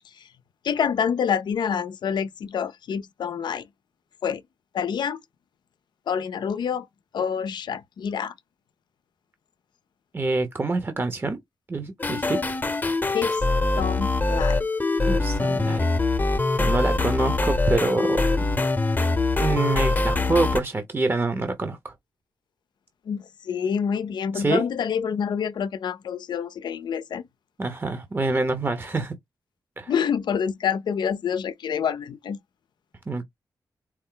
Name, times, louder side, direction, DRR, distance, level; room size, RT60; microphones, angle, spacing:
voice 1, 0.6-3.7 4.2-4.4 4.7-5.2 6.1-6.9 7.1-8.3 13.1-13.4 13.8-14.6 23.1-27.3 29.9-32.4, left 7 dB, 80° left, 0.5 m, -27 dB
voice 2, 10.1-11.4 11.7-12.4 15.1-15.9 16.6-18.2 19.4-21.9 24.3-24.6 27.6-29.1 29.8-29.9 33.1-33.2, right 3 dB, 30° right, 0.8 m, -26 dB
sound 1, 12.0-20.6, left 3 dB, 25° left, 0.8 m, -23 dB
4.5 x 2.0 x 3.8 m
cardioid pair, 70°, 8 cm